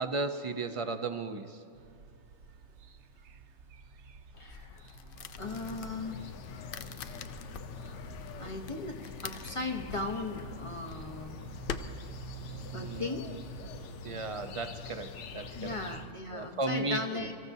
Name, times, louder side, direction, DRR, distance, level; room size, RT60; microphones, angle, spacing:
voice 1, 0.0-1.6 12.7-13.4 14.0-15.8 16.3-17.3, right 3 dB, 35° right, 8 dB, 0.6 m, -35 dB
sound 1, 1.7-16.1, right 7 dB, 75° right, 0.9 m, -50 dB
sound 2, 4.3-11.8, left 7 dB, 60° left, 0.7 m, -45 dB
voice 2, 4.4-4.8 5.4-6.2 8.3-11.4 12.7-13.3 15.5-17.3, left 2 dB, 30° left, 2 dB, 1.0 m, -37 dB
sound 3, 5.3-16.1, left 7 dB, 90° left, 1.0 m, -45 dB
25.0 x 14.5 x 2.7 m, 2.6 s
omnidirectional pair, 1.2 m